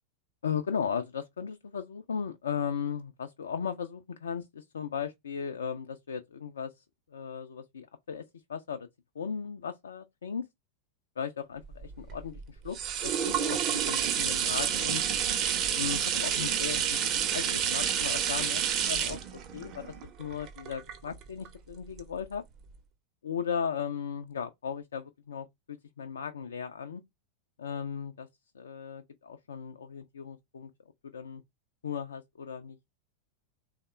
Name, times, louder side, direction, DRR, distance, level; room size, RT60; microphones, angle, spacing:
voice 1, 0.4-6.8 7.1-8.9 9.2-10.5 11.2-12.8 13.0-15.0 15.7-19.2 19.5-22.4 23.2-27.0 27.6-28.3 28.5-30.7 31.0-31.4 31.8-32.8, left 7 dB, 70° left, 0.3 m, -36 dB
sound 1, 11.7-21.5 22.0-22.1, right 9 dB, 35° right, 0.6 m, -29 dB
3.5 x 2.1 x 4.1 m
figure-of-eight pair, 90°, 0 cm